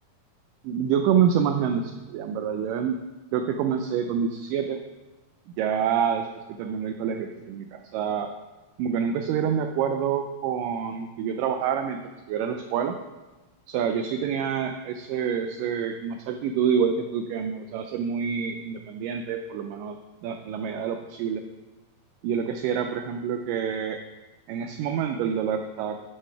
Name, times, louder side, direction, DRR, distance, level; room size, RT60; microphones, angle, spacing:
voice 1, 0.6-3.0 3.3-4.8 5.6-8.3 8.8-13.0 13.7-20.0 20.2-21.4 22.2-24.0 24.5-26.0, right 7 dB, 90° right, 6 dB, 1.9 m, -27 dB
8.0 x 5.2 x 5.6 m, 1.1 s
omnidirectional pair, 4.3 m